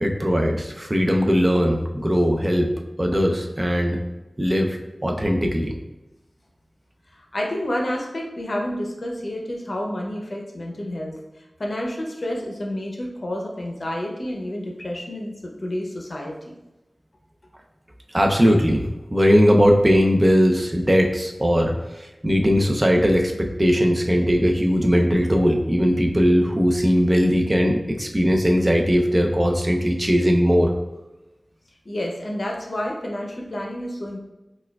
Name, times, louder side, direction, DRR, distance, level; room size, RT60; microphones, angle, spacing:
voice 1, 0.0-2.7 3.0-4.0 4.4-4.8 5.0-5.7 18.1-21.7 22.0-30.7, equal, 25° right, 2 dB, 0.4 m, -19 dB
voice 2, 7.1-11.2 11.6-16.5 31.9-34.2, left 1 dB, 60° left, 0 dB, 0.6 m, -29 dB
4.3 x 2.3 x 2.2 m, 1.0 s
wide cardioid pair, 75°, 0 cm